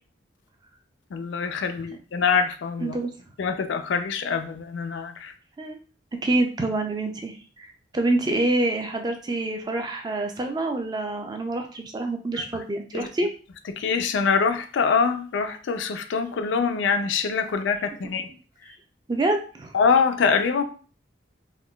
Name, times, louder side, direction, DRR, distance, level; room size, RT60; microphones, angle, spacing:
voice 1, 1.1-3.0 3.4-5.3 12.4-12.6 12.9-13.1 13.7-18.3 19.7-20.6, left 5 dB, 80° left, 8 dB, 0.4 m, -24 dB
voice 2, 2.8-3.1 5.6-5.8 6.2-7.7 7.9-13.3 19.1-19.7, right 2 dB, 20° right, 4 dB, 0.4 m, -26 dB
3.6 x 2.2 x 2.2 m, 0.38 s
head